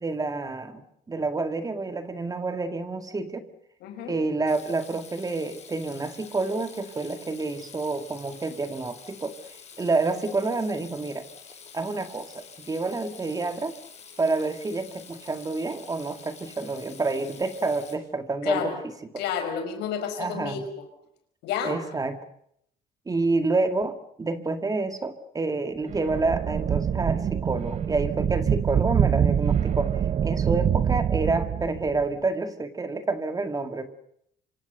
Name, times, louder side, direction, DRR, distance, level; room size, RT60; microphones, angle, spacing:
voice 1, 0.0-3.4 4.1-9.3 9.8-11.2 11.7-13.7 14.2-18.7 20.2-20.6 21.6-22.2 23.1-33.9, right 3 dB, 20° right, 8 dB, 2.1 m, -28 dB
voice 2, 3.8-4.2 18.4-18.8 19.2-20.8 21.4-21.8, left 7 dB, 85° left, 6 dB, 5.5 m, -30 dB
Water tap faucet / Sink (filling or washing), 4.5-18.0, left 6 dB, 40° left, 6.1 m, -48 dB
sound 1, 25.9-32.0, right 8 dB, 40° right, 0.9 m, -25 dB
26.0 x 25.5 x 6.7 m, 0.72 s
cardioid pair, 110°, 17 cm